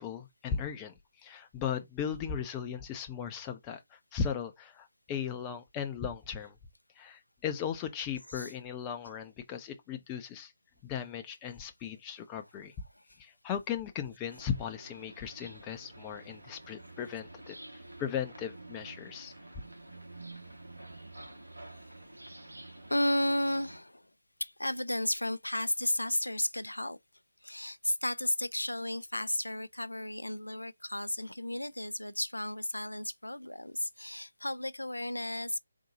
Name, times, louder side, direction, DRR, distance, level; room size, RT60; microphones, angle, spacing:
voice 1, 0.0-6.6 7.0-10.5 10.8-12.7 13.2-19.3, left 7 dB, 15° left, 0.6 m, -37 dB
sound 1, 14.3-23.8, right 2 dB, 80° right, 1.4 m, -49 dB
voice 2, 21.7-22.0 22.9-24.1 24.4-27.0 27.4-35.6, left 1 dB, 85° left, 0.4 m, -33 dB
3.9 x 2.7 x 3.9 m
figure-of-eight pair, 150°, 0 cm